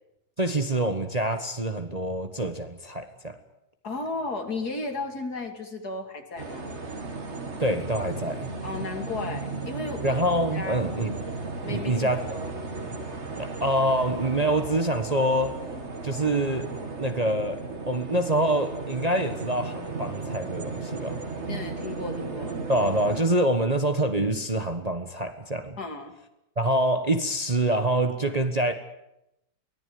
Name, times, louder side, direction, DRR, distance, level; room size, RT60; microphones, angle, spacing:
voice 1, 0.4-3.4 7.6-8.5 10.0-11.1 11.6-12.4 12.8-12.9 13.3-15.6 16.0-16.7 17.0-21.3 22.7-25.8 26.6-28.7, right 1 dB, 25° right, 7 dB, 1.3 m, -26 dB
voice 2, 3.8-6.7 8.6-10.2 10.5-10.8 11.6-12.5 21.5-22.6 25.8-26.1, left 3 dB, 60° left, 6 dB, 3.2 m, -34 dB
sound 1, 6.4-23.2, right 3 dB, 40° right, 2.4 m, -35 dB
23.5 x 18.0 x 9.6 m, 0.86 s
omnidirectional pair, 1.9 m